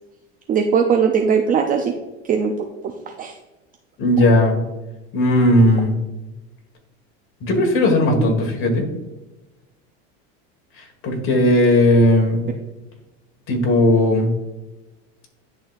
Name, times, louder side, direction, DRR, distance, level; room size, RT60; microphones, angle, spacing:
voice 1, 0.5-1.9 2.2-2.5 3.1-3.4, right 6 dB, 25° right, 4 dB, 0.5 m, -19 dB
voice 2, 4.0-4.6 5.1-5.9 7.4-8.8 11.0-12.4 13.5-14.3, left 1 dB, 40° left, 2 dB, 1.8 m, -16 dB
10.5 x 4.1 x 2.5 m, 1.1 s
supercardioid pair, 125°, 31 cm